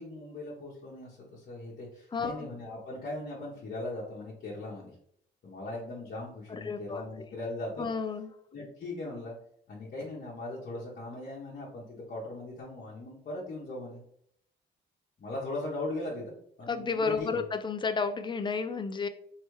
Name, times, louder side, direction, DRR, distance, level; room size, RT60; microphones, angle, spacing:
voice 1, 0.0-5.0 5.4-7.9 8.5-9.3 9.7-14.0 15.2-17.4, left 2 dB, 50° left, -5 dB, 1.0 m, -39 dB
voice 2, 2.1-2.5 6.5-7.3 7.8-8.3 16.7-19.1, left 4 dB, 25° left, 9 dB, 0.4 m, -32 dB
3.3 x 2.7 x 3.1 m, 0.68 s
cardioid pair, 90°, 20 cm